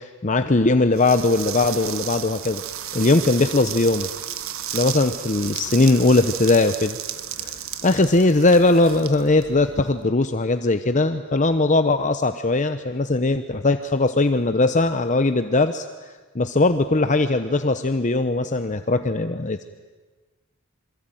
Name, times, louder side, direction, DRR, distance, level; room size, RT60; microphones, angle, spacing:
voice 1, 0.0-2.6 2.9-4.1 4.7-7.0 7.4-19.7, left 2 dB, 35° left, 9 dB, 0.9 m, -20 dB
sound 1, 0.9-9.9, right 10 dB, 75° right, 1.5 m, -33 dB
26.5 x 23.5 x 9.2 m, 1.3 s
head